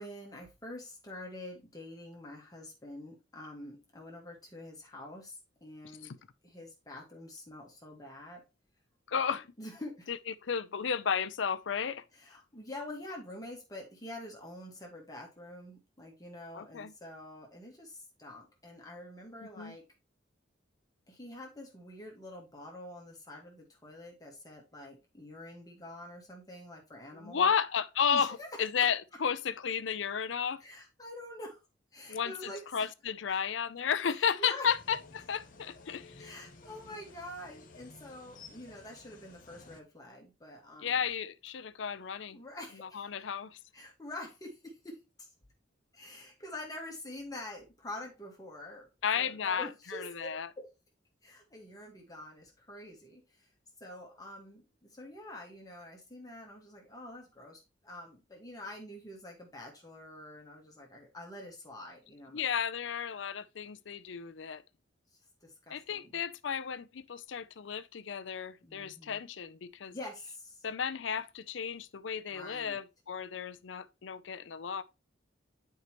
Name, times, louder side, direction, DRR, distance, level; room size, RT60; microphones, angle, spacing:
voice 1, 0.0-6.1 6.4-8.4 9.1-9.2 9.6-10.1 12.1-19.8 21.1-27.5 28.1-28.7 30.6-31.6 31.9-32.9 34.1-34.7 36.2-41.1 42.3-43.1 43.7-45.3 45.9-48.9 49.1-50.3 50.5-50.7 51.2-53.5 53.8-62.4 65.4-66.2 68.6-69.2 69.9-70.6 72.3-72.8, left 1 dB, 20° left, 1.6 m, -46 dB
voice 2, 9.1-9.4 10.1-10.2 10.4-12.0 16.5-16.9 19.6-19.8 27.1-30.6 32.1-36.3 40.8-42.4 42.9-43.6 49.0-50.5 62.3-64.6 65.7-69.9 70.6-74.8, left 7 dB, 70° left, 0.5 m, -33 dB
sound 1, 34.6-39.8, left 3 dB, 45° left, 1.0 m, -54 dB
9.4 x 4.7 x 3.0 m
head